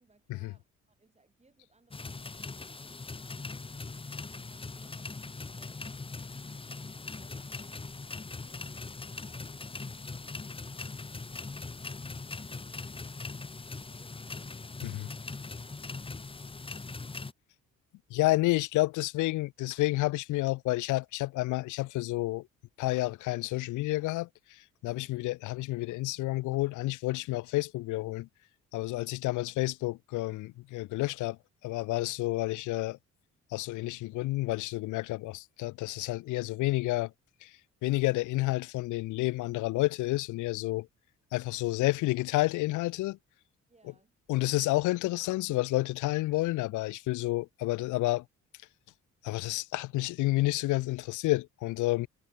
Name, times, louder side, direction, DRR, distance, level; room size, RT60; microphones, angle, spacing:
voice 1, 0.0-3.9 4.4-6.5 7.1-10.8 13.5-15.1 15.5-16.9 24.9-25.3 43.7-44.2, right 3 dB, 20° right, 7.4 m, -67 dB
sound 1, 1.9-17.3, left 3 dB, 20° left, 1.1 m, -41 dB
voice 2, 18.1-22.5 22.8-28.3 28.7-31.4 31.6-33.0 33.5-37.1 37.4-37.5 37.8-40.9 41.3-43.2 44.3-48.2 49.2-52.1, left 19 dB, 80° left, 0.5 m, -30 dB
cardioid pair, 90°, 30 cm